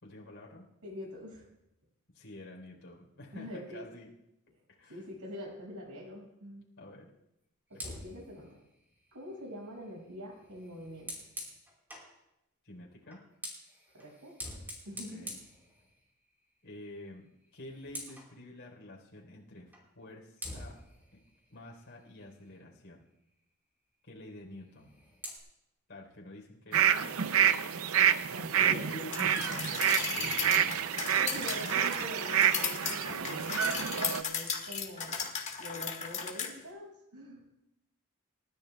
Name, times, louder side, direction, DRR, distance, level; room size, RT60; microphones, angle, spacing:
voice 1, 0.0-0.7 2.1-4.1 4.7-5.0 6.8-7.1 7.7-7.9 12.6-13.2 14.9-15.4 16.6-17.3 17.5-20.8 21.1-21.2 21.5-23.0 24.0-24.9 25.9-27.8 28.6-31.5, left 1 dB, 55° left, -2 dB, 3.9 m, -49 dB
voice 2, 0.8-1.5 3.3-3.9 4.9-6.6 7.7-8.5 9.1-11.1 13.9-14.3 14.8-15.3 26.9-27.1 28.3-28.8 31.1-35.3 35.6-37.4, equal, 90° right, -2 dB, 6.4 m, -44 dB
Fire, 7.7-12.2 13.0-16.3 16.7-16.9 17.3-18.3 19.7-19.9 20.4-22.7 24.6-25.4, equal, 10° right, 4.5 m, -47 dB
sound 1, 26.7-34.2, right 9 dB, 65° right, 0.6 m, -28 dB
sound 2, 29.1-36.5, left 6 dB, 30° left, 1.8 m, -36 dB
29.5 x 13.5 x 2.3 m, 0.85 s
head